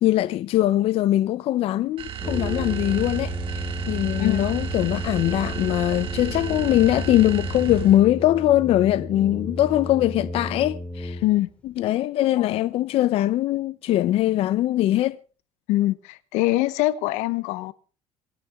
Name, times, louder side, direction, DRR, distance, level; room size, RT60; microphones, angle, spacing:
voice 1, 0.0-3.3 3.9-11.2 11.8-15.2, left 14 dB, 55° left, 0.6 m, -21 dB
sound 1, 2.0-8.1, right 9 dB, 50° right, 2.3 m, -32 dB
Brass instrument, 2.2-11.7, left 1 dB, 10° left, 2.4 m, -33 dB
voice 2, 15.7-17.7, left 17 dB, 85° left, 1.1 m, -23 dB
26.5 x 9.5 x 3.6 m
cardioid pair, 135°, 12 cm